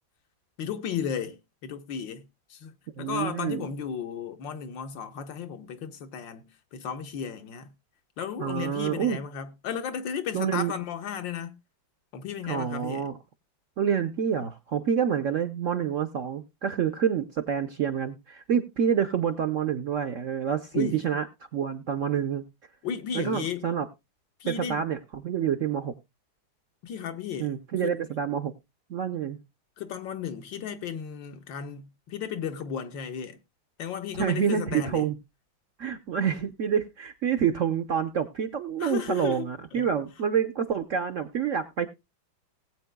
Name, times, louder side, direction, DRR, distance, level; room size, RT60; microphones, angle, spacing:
voice 1, 0.6-7.7 8.2-11.6 12.1-13.1 20.7-21.0 22.8-23.6 24.4-24.9 26.8-27.5 29.8-33.4 33.8-35.1 38.8-39.9, left 8 dB, 70° left, 1.7 m, -34 dB
voice 2, 3.0-3.7 8.4-9.2 10.3-10.7 12.4-13.2 13.8-21.3 21.5-22.4 23.1-23.9 24.5-25.9 27.4-28.5 28.9-29.4 34.2-35.2 35.8-41.9, right 8 dB, 60° right, 0.8 m, -27 dB
19.0 x 8.4 x 2.2 m
omnidirectional pair, 2.1 m